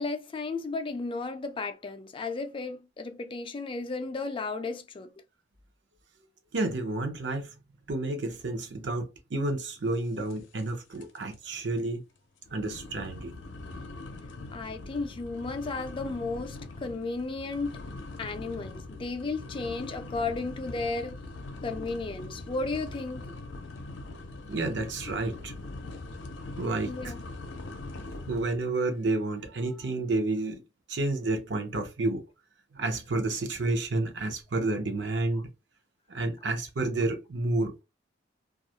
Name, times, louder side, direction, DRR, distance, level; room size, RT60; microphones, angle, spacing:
voice 1, 0.0-5.1 14.5-17.8 18.2-21.2 21.6-23.3 26.9-27.2, left 3 dB, 30° left, 0.3 m, -34 dB
voice 2, 6.5-7.5 7.9-12.0 12.5-13.3 24.4-25.5 26.6-27.1 28.3-30.6 30.9-32.2 32.7-35.5 36.1-37.8, right 2 dB, 70° right, 0.6 m, -30 dB
sound 1, 10.3-10.7 10.9-11.3 11.8-11.9 12.4-28.6, left 2 dB, 80° left, 0.5 m, -42 dB
2.3 x 2.0 x 2.7 m
head